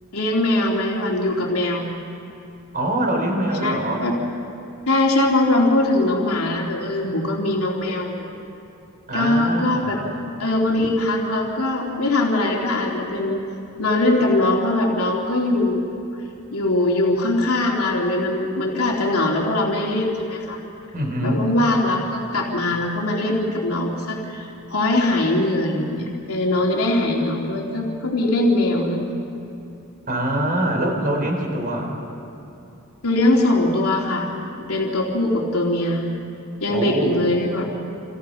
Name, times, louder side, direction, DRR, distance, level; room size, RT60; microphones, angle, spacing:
voice 1, 0.1-1.9 3.6-4.1 4.9-8.3 9.1-10.0 10.4-13.4 13.8-15.8 16.5-20.7 21.2-29.0 33.0-34.3 34.6-36.1 36.6-37.7, left 2 dB, 85° left, -2 dB, 3.0 m, -21 dB
voice 2, 2.7-4.1 9.1-10.0 20.9-21.5 30.1-31.9 36.7-37.3, right 1 dB, 40° right, 2 dB, 4.5 m, -24 dB
28.5 x 28.5 x 5.7 m, 2.8 s
head